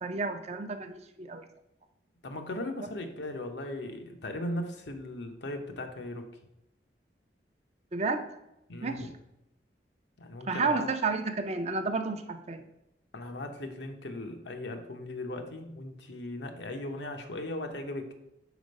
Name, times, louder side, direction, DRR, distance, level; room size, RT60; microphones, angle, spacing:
voice 1, 0.0-1.4 7.9-8.2 8.8-9.1 10.5-12.6, right 4 dB, 40° right, 7 dB, 0.5 m, -31 dB
voice 2, 2.2-6.3 8.7-9.1 10.2-10.9 13.1-18.1, left 1 dB, 85° left, 5 dB, 0.8 m, -38 dB
5.0 x 4.3 x 5.2 m, 0.85 s
head